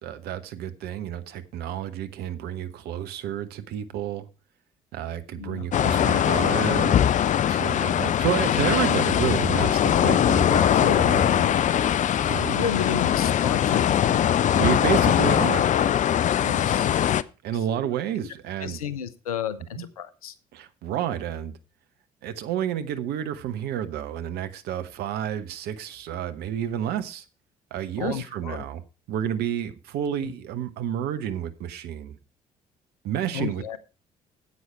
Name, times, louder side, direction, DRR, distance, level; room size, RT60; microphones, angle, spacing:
voice 1, 0.0-4.3 4.9-7.0 7.5-11.5 12.2-12.6 14.5-15.7 17.4-18.8 19.8-19.9 20.5-21.5 22.2-27.2 27.7-28.8 29.1-32.2 33.0-33.8, right 10 dB, 65° right, 1.1 m, -30 dB
voice 2, 5.3-5.7 8.2-8.6 10.7-11.1 12.5-14.2 16.4-16.9 17.8-17.9 18.6-20.4 28.0-28.6 30.2-30.3 33.3-33.8, left 8 dB, 85° left, 0.7 m, -32 dB
sound 1, 5.7-17.2, left 10 dB, 45° left, 0.5 m, -21 dB
9.7 x 8.4 x 4.5 m
figure-of-eight pair, 50°, 18 cm